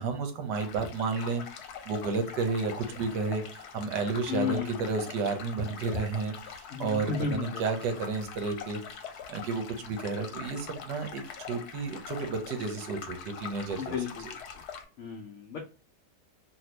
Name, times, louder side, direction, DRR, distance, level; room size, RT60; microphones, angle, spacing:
voice 1, 0.0-1.4 1.9-8.8 9.3-11.2 11.5-14.0 14.2-14.3, right 4 dB, 80° right, 6 dB, 1.3 m, -32 dB
sound 1, 0.5-14.8, left 7 dB, 70° left, 1.1 m, -43 dB
voice 2, 4.3-4.9 6.7-7.6 13.8-14.2 15.0-15.6, left 6 dB, 85° left, 2 dB, 0.6 m, -33 dB
2.8 x 2.7 x 3.1 m, 0.36 s
omnidirectional pair, 1.9 m